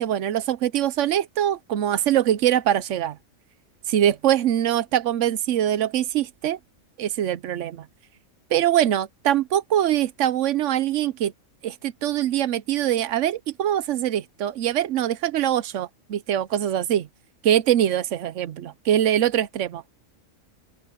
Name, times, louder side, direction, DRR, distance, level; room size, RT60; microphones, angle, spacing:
voice 1, 0.0-3.2 3.9-6.6 7.0-7.9 8.5-11.3 11.6-17.1 17.4-19.8, right 11 dB, 65° right, 1.0 m, -23 dB
open air
omnidirectional pair, 1.4 m